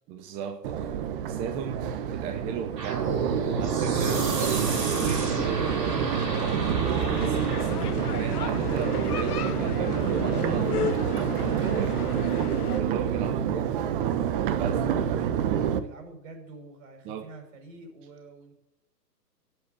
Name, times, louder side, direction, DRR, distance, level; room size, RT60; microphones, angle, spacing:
voice 1, 0.1-0.9 1.3-1.8 2.1-3.0 3.5-6.3 6.9-11.0 11.5-12.2 12.6-13.8 14.6-14.8 17.0-17.3, right 7 dB, 10° right, 6 dB, 0.6 m, -36 dB
Crowd, 0.6-15.8, right 8 dB, 30° right, 1.2 m, -27 dB
sound 1, 2.8-7.8, right 3 dB, 80° right, 6.6 m, -33 dB
sound 2, 4.1-12.8, left 10 dB, 65° left, 0.8 m, -35 dB
voice 2, 11.9-12.4 14.7-18.5, right 2 dB, 50° right, 4 dB, 6.1 m, -45 dB
12.5 x 9.1 x 8.3 m, 0.85 s
hypercardioid pair, 135°, 49 cm